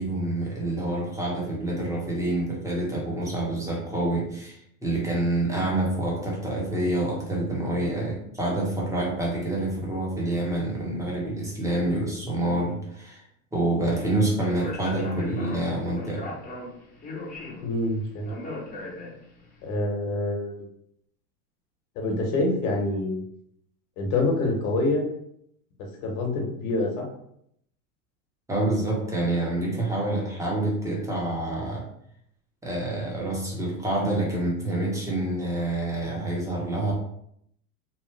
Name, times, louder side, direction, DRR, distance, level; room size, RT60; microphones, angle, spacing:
voice 1, 0.0-13.2 13.5-16.3 28.5-31.9 32.6-36.9, right 1 dB, 5° right, -3 dB, 1.0 m, -27 dB
Speech, 14.4-19.5, left 2 dB, 20° left, 0.8 m, -39 dB
voice 2, 17.6-18.3 19.6-20.6 21.9-23.2 24.0-25.1 26.0-27.1, left 2 dB, 60° left, 0 dB, 1.2 m, -26 dB
3.1 x 2.1 x 3.2 m, 0.71 s
supercardioid pair, 110°, 42 cm